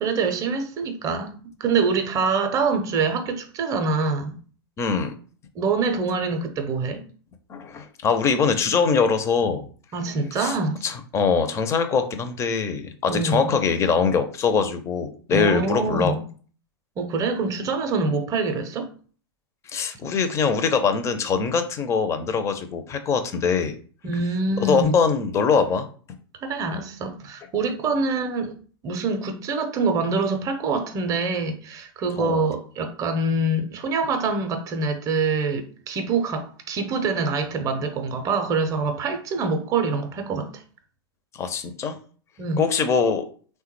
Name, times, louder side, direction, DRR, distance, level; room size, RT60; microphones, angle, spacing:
voice 1, 0.0-4.3 5.5-7.0 9.9-10.8 13.1-13.5 15.3-16.3 17.0-18.9 24.0-25.0 26.4-28.6 28.8-40.6 42.4-42.7, right 4 dB, 25° right, 0.6 m, -25 dB
voice 2, 4.8-5.1 7.5-9.7 10.4-10.6 10.8-16.1 19.7-23.8 24.6-25.9 32.2-32.5 41.3-42.0 42.6-43.3, left 5 dB, 20° left, 0.4 m, -23 dB
3.3 x 2.1 x 3.1 m
hypercardioid pair, 105°, 13 cm